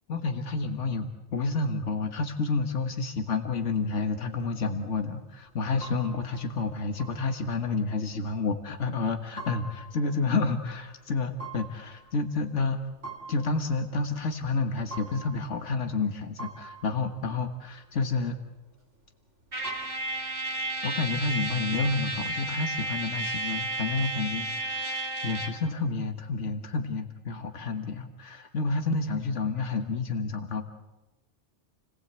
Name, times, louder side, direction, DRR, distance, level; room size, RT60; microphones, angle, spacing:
voice 1, 0.1-12.8 13.3-18.4 20.8-30.7, left 3 dB, 90° left, 5 dB, 1.8 m, -30 dB
sound 1, 3.7-21.0, right 4 dB, 85° right, 4.1 m, -47 dB
Trumpet, 19.5-25.6, right 2 dB, 50° right, 3.1 m, -32 dB
29.5 x 19.5 x 8.2 m, 1.0 s
omnidirectional pair, 1.2 m